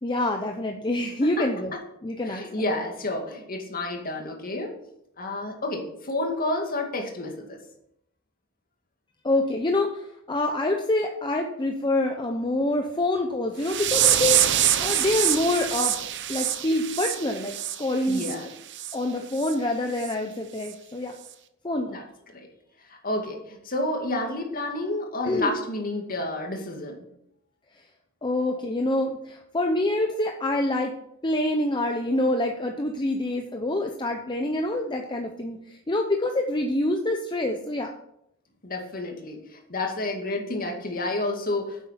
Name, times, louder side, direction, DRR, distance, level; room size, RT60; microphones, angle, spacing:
voice 1, 0.0-1.7 2.0-2.5 9.2-14.4 14.8-15.9 16.3-18.4 18.9-21.1 21.6-22.0 25.2-25.5 28.2-30.9 31.2-37.9, left 1 dB, 20° left, 3 dB, 0.8 m, -26 dB
voice 2, 2.3-4.7 5.2-7.6 18.1-18.5 21.9-22.0 22.3-22.5 22.9-27.1 38.6-41.8, left 2 dB, 45° left, 2 dB, 2.2 m, -30 dB
sound 1, 13.6-18.4 18.7-19.0 19.4-19.5 20.0-20.1 20.6-20.7, right 11 dB, 55° right, 0.8 m, -25 dB
10.0 x 8.1 x 5.8 m, 0.78 s
head